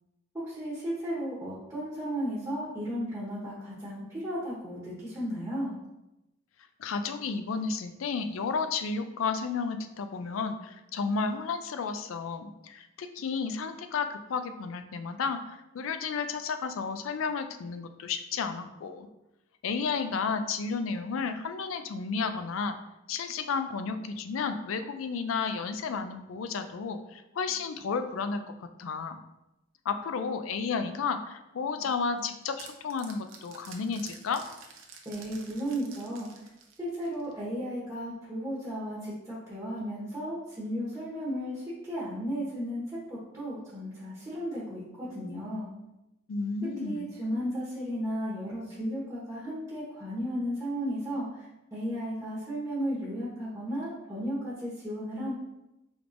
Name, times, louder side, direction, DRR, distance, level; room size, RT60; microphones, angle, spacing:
voice 1, 0.3-5.8 35.0-36.5 36.8-45.7 46.8-51.5 51.7-55.3, equal, 15° right, -8 dB, 1.1 m, -34 dB
voice 2, 6.8-19.1 19.6-22.8 23.1-29.2 29.9-34.4 46.3-47.1, left 5 dB, 85° left, 8 dB, 0.4 m, -32 dB
sound 1, 31.9-37.4, right 5 dB, 85° right, 0.6 m, -50 dB
5.0 x 3.4 x 2.5 m, 0.93 s
head